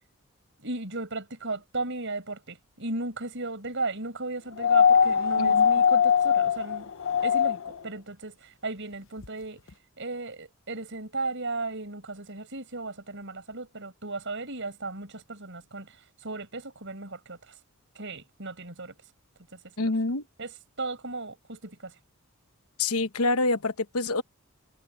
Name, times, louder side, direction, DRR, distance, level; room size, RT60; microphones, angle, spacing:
voice 1, 0.6-6.9 7.2-9.6 10.0-17.6 17.9-19.1 19.5-19.9 20.4-22.0, right 3 dB, 55° right, 7.5 m, -36 dB
sound 1, 4.6-7.8 9.2-9.3, left 7 dB, 60° left, 0.9 m, -21 dB
voice 2, 19.8-20.2 22.8-24.2, left 2 dB, 85° left, 1.0 m, -26 dB
head